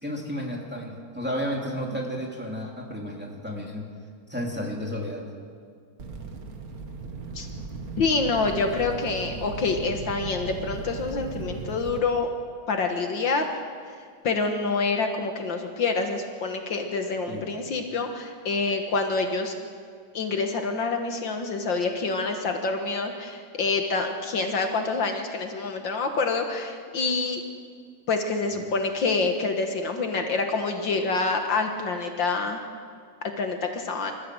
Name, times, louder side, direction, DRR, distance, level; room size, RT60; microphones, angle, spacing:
voice 1, 0.0-3.9 4.3-5.3 17.3-17.5, equal, 5° right, -1 dB, 2.9 m, -32 dB
sound 1, 6.0-12.0, right 3 dB, 45° right, 2.0 m, -37 dB
voice 2, 8.0-12.3 12.7-13.6 14.2-19.5 20.1-27.4 28.1-32.6 33.4-34.1, left 4 dB, 65° left, 4 dB, 2.1 m, -27 dB
26.5 x 14.5 x 7.8 m, 2.1 s
omnidirectional pair, 2.2 m